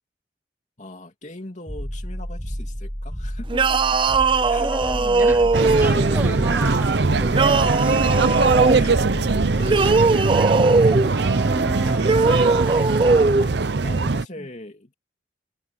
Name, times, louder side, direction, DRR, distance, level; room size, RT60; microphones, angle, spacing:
voice 1, 0.8-4.0 4.4-5.4 5.9-6.8 7.5-7.8 8.7-10.5 10.9-11.5 11.8-12.4 13.2-14.9, left 1 dB, 40° left, 2.9 m, -40 dB
sound 1, 1.7-10.8, equal, 10° left, 1.8 m, -31 dB
sound 2, 3.5-6.2 7.3-8.8 9.6-11.1 12.0-13.5, right 3 dB, 25° right, 0.5 m, -19 dB
voice 2, 4.3-5.5 5.8-8.5 11.1-12.9 14.4-14.5, right 1 dB, 10° right, 1.1 m, -33 dB
sound 3, 5.5-14.3, right 3 dB, 65° right, 0.7 m, -21 dB
head